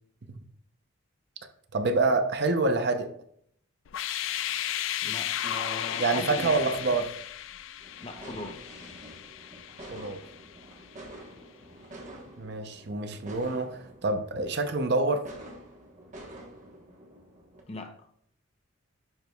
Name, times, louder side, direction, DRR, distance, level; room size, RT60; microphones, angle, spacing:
voice 1, 1.7-3.1 6.0-7.1 9.9-10.2 12.4-15.3, right 3 dB, 50° right, 7 dB, 0.6 m, -27 dB
sound 1, 3.9-10.7, left 11 dB, 65° left, 0.3 m, -35 dB
voice 2, 5.0-6.6 6.9-7.0 8.0-8.6 17.7-18.1, left 2 dB, 30° left, 6 dB, 0.6 m, -39 dB
sound 2, 7.8-17.6, right 1 dB, 35° right, 1.1 m, -48 dB
10.5 x 4.6 x 2.3 m, 0.66 s
head